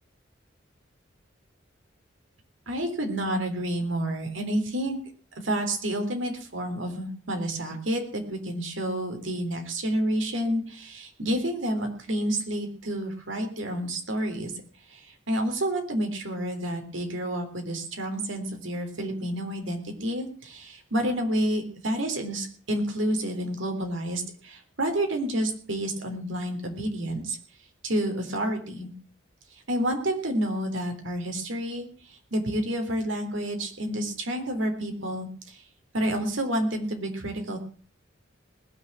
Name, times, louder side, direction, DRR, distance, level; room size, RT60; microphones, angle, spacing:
voice 1, 2.7-5.0 5.4-14.5 14.9-27.4 27.8-28.9 29.7-35.6 35.9-37.6, right 1 dB, 80° right, 4 dB, 3.6 m, -29 dB
20.0 x 6.9 x 7.3 m, 0.43 s
head